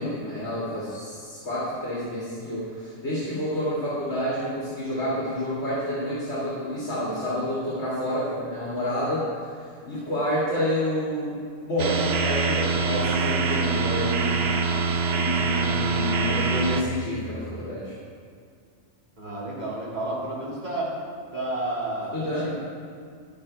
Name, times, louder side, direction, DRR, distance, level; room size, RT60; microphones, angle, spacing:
voice 1, 0.0-9.2 9.5-11.4 11.6-17.9 22.1-22.5, left 1 dB, 60° left, -9 dB, 2.4 m, -29 dB
sound 1, 11.8-16.8, right 4 dB, 60° right, 0.8 m, -24 dB
voice 2, 19.2-20.9 21.3-22.1 22.4-22.5, right 2 dB, 35° right, -7 dB, 2.3 m, -30 dB
11.0 x 9.3 x 3.3 m, 2.2 s
omnidirectional pair, 1.3 m